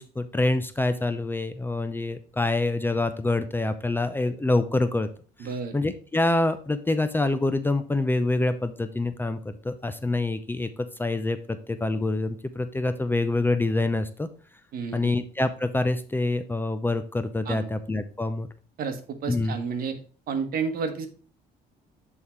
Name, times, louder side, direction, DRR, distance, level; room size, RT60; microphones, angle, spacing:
voice 1, 0.0-5.1 5.4-5.5 5.7-14.3 14.9-18.5 19.3-19.6, left 2 dB, 10° left, 10 dB, 0.6 m, -26 dB
voice 2, 5.4-5.7 14.7-15.2 17.4-17.7 18.8-20.0 20.3-21.1, right 5 dB, 60° right, 7 dB, 1.3 m, -31 dB
8.3 x 3.7 x 4.4 m, 0.39 s
cardioid pair, 110°, 17 cm